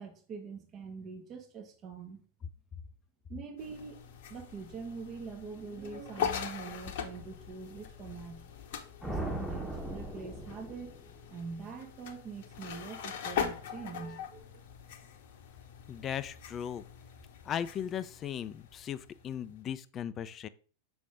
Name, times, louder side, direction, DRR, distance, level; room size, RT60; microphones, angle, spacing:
voice 1, 0.0-2.2 3.3-4.0 4.3-8.4 9.0-11.0 11.3-14.6, right 5 dB, 30° right, 4 dB, 1.2 m, -44 dB
sound 1, 3.6-19.6, left 7 dB, 55° left, 0.9 m, -42 dB
sound 2, 9.0-11.3, right 1 dB, ahead, 1.2 m, -38 dB
voice 2, 15.9-16.8 17.4-20.5, left 9 dB, 30° left, 15 dB, 0.4 m, -37 dB
6.7 x 5.2 x 3.6 m, 0.41 s
figure-of-eight pair, 90°, 0 cm